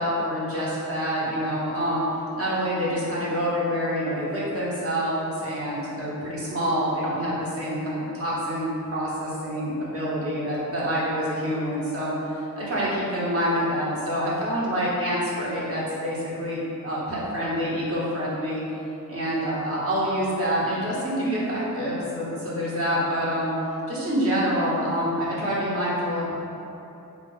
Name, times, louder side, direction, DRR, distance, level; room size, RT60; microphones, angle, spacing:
voice 1, 0.0-2.0 2.4-18.6 19.1-23.5 23.9-26.3, equal, 40° right, -7 dB, 1.1 m, -27 dB
4.9 x 2.3 x 4.0 m, 2.9 s
wide cardioid pair, 165°, 34 cm